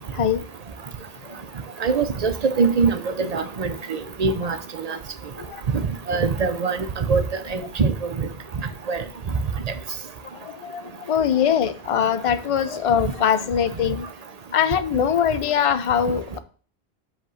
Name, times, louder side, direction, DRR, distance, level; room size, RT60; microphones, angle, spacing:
voice 1, 1.8-4.6 4.8-5.0 5.7-5.8 6.1-7.2 7.5-8.3 8.9-9.0 9.7-9.8, right 4 dB, 40° right, 0.7 m, -23 dB
voice 2, 10.3-14.1 14.5-16.4, left 8 dB, 40° left, 0.5 m, -22 dB
8.0 x 3.4 x 6.3 m
omnidirectional pair, 1.1 m